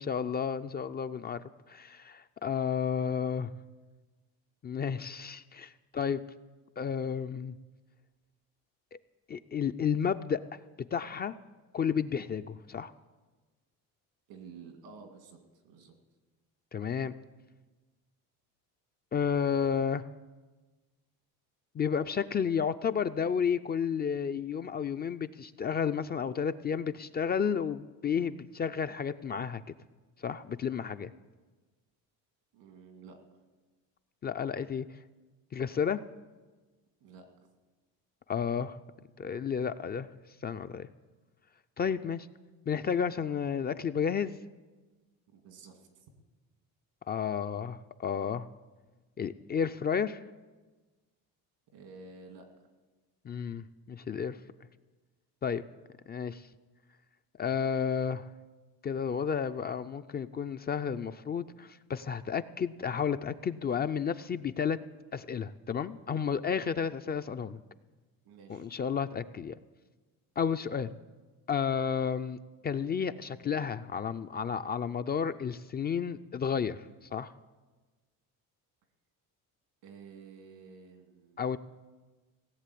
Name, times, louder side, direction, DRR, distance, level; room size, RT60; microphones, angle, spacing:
voice 1, 0.0-3.5 4.6-6.2 6.8-7.5 9.3-10.6 10.9-11.3 11.7-12.9 16.7-17.1 19.1-20.1 21.7-29.6 30.2-31.1 34.2-34.9 35.5-36.0 38.3-38.8 39.2-40.1 40.4-40.9 41.8-42.3 42.7-44.4 47.1-48.5 49.2-50.2 53.2-54.4 55.4-55.6 56.1-56.4 57.4-58.3 58.8-64.8 65.1-67.6 68.5-69.5 70.4-70.9 71.5-72.4 72.6-76.8 77.1-77.3 81.4-81.6, left 7 dB, 25° left, 11 dB, 0.4 m, -32 dB
voice 2, 14.3-16.0 32.5-33.2 37.0-37.3 45.3-46.1 51.7-52.5 68.2-68.7 79.8-81.6, right 5 dB, 90° right, 5 dB, 2.5 m, -51 dB
17.5 x 7.5 x 8.4 m, 1.3 s
cardioid pair, 105°, 37 cm